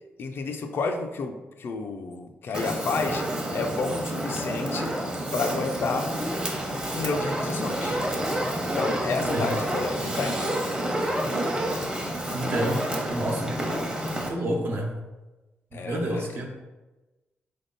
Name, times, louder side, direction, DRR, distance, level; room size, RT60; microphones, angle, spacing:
voice 1, 0.2-6.1 6.9-8.0 8.6-10.5 15.7-16.4, left 4 dB, 65° left, 5 dB, 0.5 m, -31 dB
Fire, 2.5-14.3, right 1 dB, 20° right, 0.9 m, -29 dB
voice 2, 12.3-12.8 13.1-13.5 14.3-14.9 15.7-16.5, right 1 dB, 60° right, 0 dB, 1.0 m, -28 dB
3.7 x 3.5 x 4.0 m, 1.1 s
cardioid pair, 90°, 4 cm